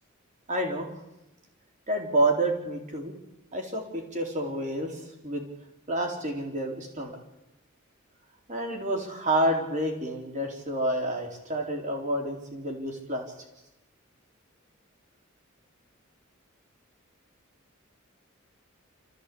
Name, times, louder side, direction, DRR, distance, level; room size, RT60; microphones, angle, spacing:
voice 1, 0.5-1.0 1.9-3.1 3.5-5.5 5.9-7.2 8.5-13.3, right 1 dB, 35° right, 2 dB, 3.9 m, -29 dB
27.5 x 14.5 x 8.5 m, 0.97 s
head